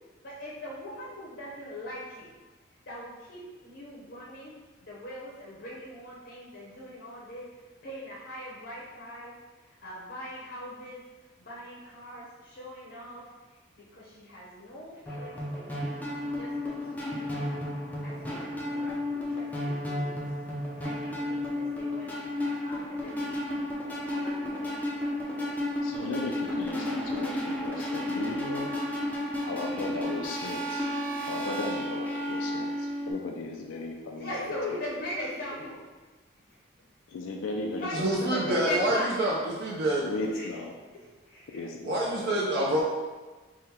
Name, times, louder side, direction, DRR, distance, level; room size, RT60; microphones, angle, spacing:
voice 1, 0.2-2.3 2.9-4.5 4.8-11.0 11.4-15.8 16.2-17.6 18.0-20.2 20.8-22.2 22.6-23.7 24.1-24.6 34.1-36.0 36.5-36.6 37.8-39.1 40.3-40.5 41.3-41.7, equal, 60° left, -5 dB, 0.7 m, -40 dB
sound 1, 15.1-33.1, left 1 dB, 10° left, 0.4 m, -32 dB
voice 2, 25.8-28.7 29.4-30.9 31.2-34.8 37.1-37.9 38.2-38.9 40.0-40.8 41.5-42.8, left 2 dB, 85° left, 1 dB, 0.4 m, -36 dB
voice 3, 38.0-39.3 39.6-40.0 41.8-42.8, right 1 dB, 55° right, -4 dB, 0.4 m, -26 dB
3.6 x 2.1 x 4.2 m, 1.3 s
head